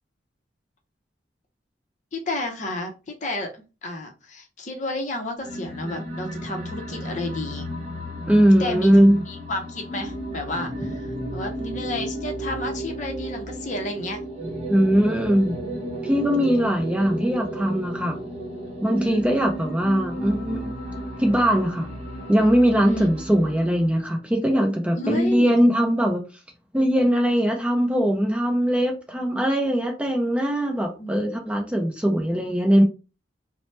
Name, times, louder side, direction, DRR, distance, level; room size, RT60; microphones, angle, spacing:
voice 1, 2.1-7.7 8.6-8.9 9.3-14.2 19.0-19.4 22.9-23.1 25.0-25.5 31.0-31.4, left 1 dB, 40° left, 3 dB, 0.6 m, -31 dB
sound 1, 5.4-24.0, right 1 dB, 35° right, 0.8 m, -33 dB
voice 2, 8.3-9.2 14.7-15.6 16.0-18.2 18.8-20.7 21.2-21.9 22.3-26.2 26.7-32.8, equal, 5° right, 2 dB, 0.4 m, -20 dB
2.9 x 2.0 x 3.1 m, 0.30 s
head